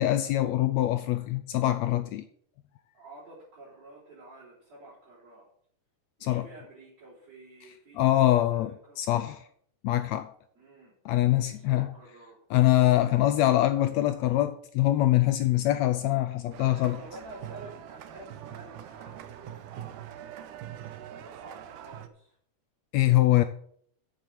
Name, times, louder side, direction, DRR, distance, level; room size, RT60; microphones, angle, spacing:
voice 1, 0.0-2.2 6.2-6.5 8.0-8.7 9.0-9.5 9.8-10.3 11.0-11.9 12.5-17.0 22.9-23.4, left 15 dB, 80° left, 1.6 m, -24 dB
voice 2, 2.9-5.5 6.2-9.0 10.6-10.9 11.3-12.4 17.0-20.6 21.0-22.4, right 2 dB, 55° right, 4.5 m, -50 dB
sound 1, 16.5-22.1, right 11 dB, 85° right, 2.4 m, -43 dB
8.1 x 7.5 x 7.3 m
omnidirectional pair, 3.5 m